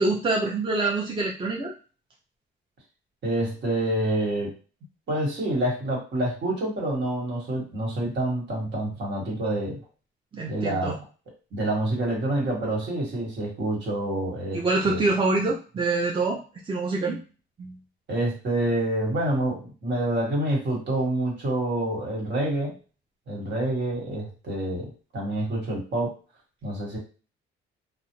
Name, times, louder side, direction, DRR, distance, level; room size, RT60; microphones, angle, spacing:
voice 1, 0.0-1.7 10.3-11.0 14.5-16.4 16.7-17.2 17.6-17.8, right 3 dB, 25° right, -1 dB, 0.6 m, -25 dB
voice 2, 3.2-4.5 5.1-9.8 10.5-11.0 11.5-15.1 18.1-22.8 23.3-26.2 26.6-27.0, right 1 dB, 65° right, -2 dB, 1.4 m, -27 dB
2.4 x 2.0 x 3.0 m, 0.35 s
cardioid pair, 90°, 20 cm